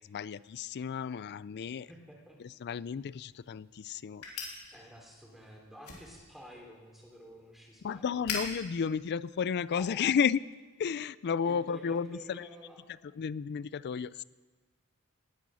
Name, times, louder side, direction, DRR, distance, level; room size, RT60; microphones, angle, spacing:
voice 1, 0.0-1.9 2.4-4.6 7.8-10.4 10.8-12.4 13.2-14.2, left 6 dB, 50° left, 20 dB, 0.3 m, -32 dB
voice 2, 1.9-2.4 4.7-8.2 9.8-10.1 11.4-12.8, equal, ahead, -1 dB, 3.1 m, -51 dB
sound 1, 2.8-10.0, left 4 dB, 90° left, 3.5 m, -45 dB
19.0 x 10.5 x 6.3 m, 1.3 s
head